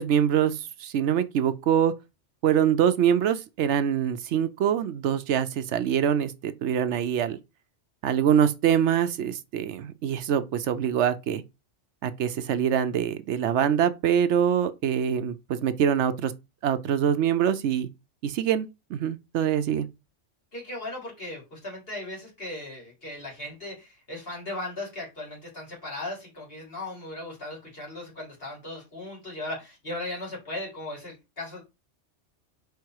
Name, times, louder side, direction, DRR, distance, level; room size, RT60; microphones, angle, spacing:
voice 1, 0.0-1.9 2.4-7.4 8.0-11.4 12.0-16.3 16.6-17.9 18.2-19.9, right 9 dB, 75° right, 0.9 m, -24 dB
voice 2, 20.5-31.6, left 1 dB, 50° left, 3.5 m, -37 dB
4.8 x 4.7 x 4.6 m
omnidirectional pair, 1.2 m